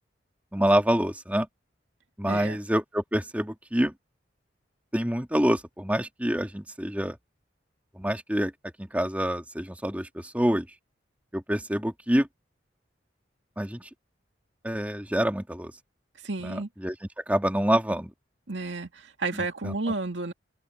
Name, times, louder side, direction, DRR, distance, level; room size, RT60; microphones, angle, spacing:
voice 1, 0.5-1.5 2.2-3.9 4.9-7.2 8.0-8.5 8.8-10.7 11.3-12.3 13.6-13.9 14.6-15.7 16.4-16.9 17.3-18.1 19.3-19.7, equal, 10° right, 2.3 m, -26 dB
voice 2, 2.3-2.6 16.2-16.7 18.5-20.3, right 3 dB, 85° right, 2.2 m, -31 dB
head